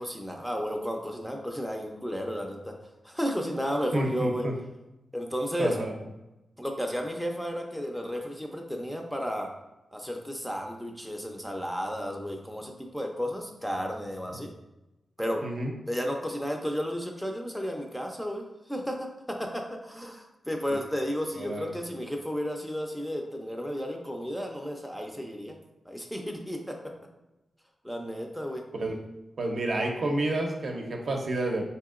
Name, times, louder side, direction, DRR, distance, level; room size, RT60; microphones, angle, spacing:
voice 1, 0.0-2.8 3.0-4.5 5.1-5.8 6.6-9.5 9.9-14.5 15.2-15.4 15.9-18.4 18.7-25.6 25.9-26.8 27.8-28.6, equal, 5° left, 2 dB, 0.4 m, -33 dB
voice 2, 3.9-4.5 5.6-5.9 15.4-15.7 21.4-21.7 28.7-29.0 29.4-31.7, right 1 dB, 60° right, 1 dB, 0.6 m, -29 dB
4.4 x 2.8 x 2.4 m, 0.96 s
wide cardioid pair, 100°, 0 cm